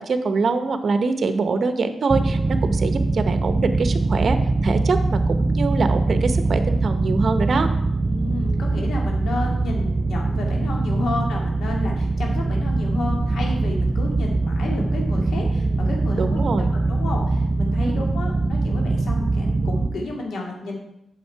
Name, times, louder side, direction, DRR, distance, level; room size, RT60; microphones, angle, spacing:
voice 1, 0.1-4.4 4.6-7.7 11.1-11.3 16.2-16.7 17.8-18.1, right 4 dB, 50° right, 9 dB, 0.9 m, -24 dB
sound 1, 2.1-19.9, right 3 dB, 25° right, 0.5 m, -22 dB
voice 2, 8.1-16.5 16.9-20.8, left 2 dB, 90° left, -1 dB, 2.3 m, -31 dB
8.5 x 6.7 x 4.6 m, 0.81 s
wide cardioid pair, 120°, 0 cm